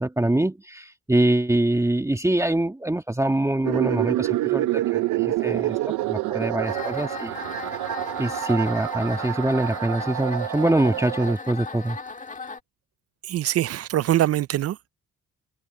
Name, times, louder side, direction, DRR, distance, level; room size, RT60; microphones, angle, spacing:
voice 1, 0.0-7.3 8.2-12.0, right 1 dB, 10° right, 1.7 m, -24 dB
sound 1, 3.6-11.4, right 15 dB, 85° right, 0.7 m, -27 dB
sound 2, 6.6-12.6, left 4 dB, 25° left, 1.8 m, -36 dB
voice 2, 13.2-14.9, right 13 dB, 55° right, 0.5 m, -23 dB
cardioid pair, 90°, 30 cm